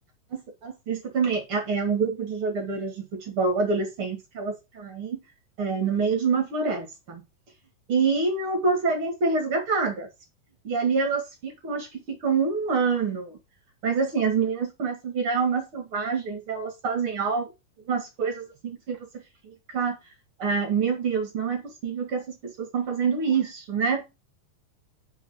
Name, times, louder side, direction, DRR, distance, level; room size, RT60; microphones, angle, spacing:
voice 1, 0.3-5.2 5.6-7.2 7.9-10.1 10.6-13.4 13.8-17.5 17.9-20.0 20.4-24.1, right 5 dB, 40° right, 3 dB, 2.4 m, -26 dB
6.3 x 5.7 x 6.1 m, 0.25 s
omnidirectional pair, 4.2 m